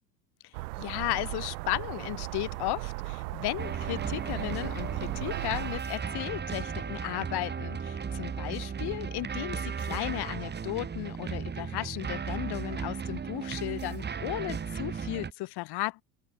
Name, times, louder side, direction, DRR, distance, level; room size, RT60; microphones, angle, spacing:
sound 1, 0.5-5.8, right 25 dB, 65° right, 6.8 m, -37 dB
voice 1, 0.8-16.0, left 20 dB, 50° left, 7.3 m, -35 dB
sound 2, 3.6-15.3, right 6 dB, 20° right, 2.0 m, -35 dB
open air
hypercardioid pair, 80°, 49 cm